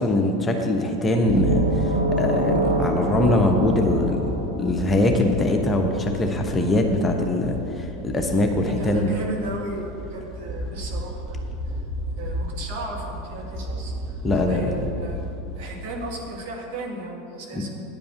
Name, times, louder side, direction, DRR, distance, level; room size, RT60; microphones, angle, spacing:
voice 1, 0.0-4.3 4.5-9.1 14.2-14.7 17.5-17.6, left 2 dB, 15° left, 3 dB, 1.0 m, -22 dB
sound 1, 1.3-16.3, equal, 25° right, 1.5 m, -34 dB
sound 2, 1.3-5.0, right 2 dB, 80° right, 0.9 m, -25 dB
voice 2, 8.6-11.4 11.7-11.8 12.1-15.2 15.6-17.7, right 2 dB, 55° right, 0 dB, 1.8 m, -35 dB
10.0 x 5.3 x 8.2 m, 2.8 s
figure-of-eight pair, 80°, 0 cm